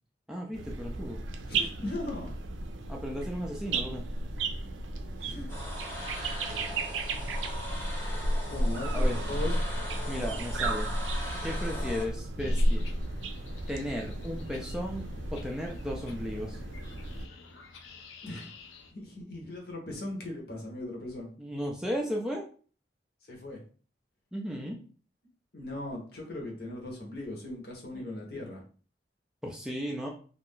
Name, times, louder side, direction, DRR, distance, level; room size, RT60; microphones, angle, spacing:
voice 1, 0.3-1.3 2.9-4.1 8.9-9.2 10.1-10.9 11.4-12.8 13.7-16.6 21.4-22.5 24.3-24.8 27.9-28.1 29.4-30.1, equal, 5° right, -1 dB, 0.3 m, -35 dB
sound 1, 0.5-17.3, right 1 dB, 90° right, 0.4 m, -33 dB
voice 2, 1.5-2.3 5.2-5.5 8.5-9.6 18.2-18.5 18.9-21.3 23.3-23.6 25.5-28.6, left 1 dB, 55° left, 0 dB, 0.9 m, -38 dB
sound 2, 5.5-12.0, left 1 dB, 15° left, 0.7 m, -41 dB
sound 3, 12.4-18.9, left 3 dB, 85° left, 0.4 m, -49 dB
2.5 x 2.3 x 3.5 m, 0.40 s
head